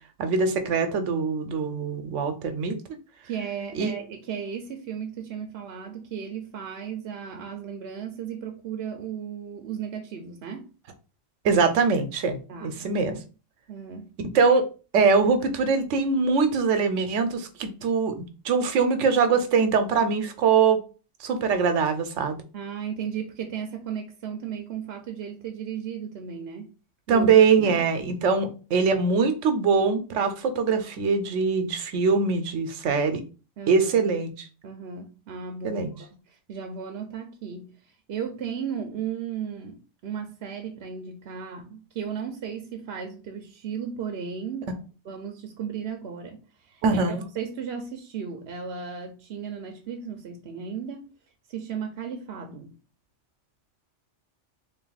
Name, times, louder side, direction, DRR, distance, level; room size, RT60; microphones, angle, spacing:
voice 1, 0.2-2.8 3.7-4.0 11.4-13.1 14.3-14.7 14.9-18.1 18.4-20.8 21.2-22.4 27.1-33.2 33.7-34.3 35.6-35.9 46.8-47.2, right 5 dB, 85° right, 1.0 m, -22 dB
voice 2, 3.2-10.7 12.5-13.2 13.7-14.1 22.5-26.7 27.1-27.3 27.6-27.8 33.6-34.1 34.6-44.7 45.0-51.0 51.5-52.7, right 7 dB, 65° right, 0.8 m, -35 dB
3.5 x 2.6 x 3.9 m
omnidirectional pair, 1.2 m